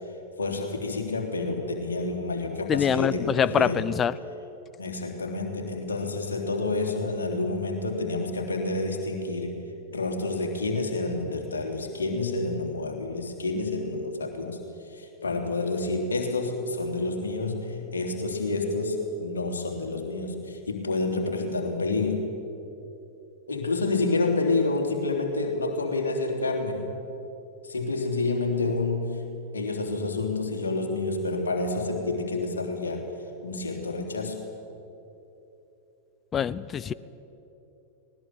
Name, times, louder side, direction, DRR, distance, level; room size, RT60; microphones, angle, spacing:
voice 1, 0.4-3.8 4.8-9.6 9.9-14.6 14.8-22.3 23.5-26.9 27.6-29.2 29.5-33.0 33.4-34.4, left 3 dB, 70° left, 2 dB, 3.4 m, -29 dB
voice 2, 2.7-4.2 36.3-36.9, left 8 dB, 25° left, 19 dB, 0.6 m, -24 dB
19.5 x 19.0 x 9.0 m, 2.9 s
figure-of-eight pair, 90°, 0 cm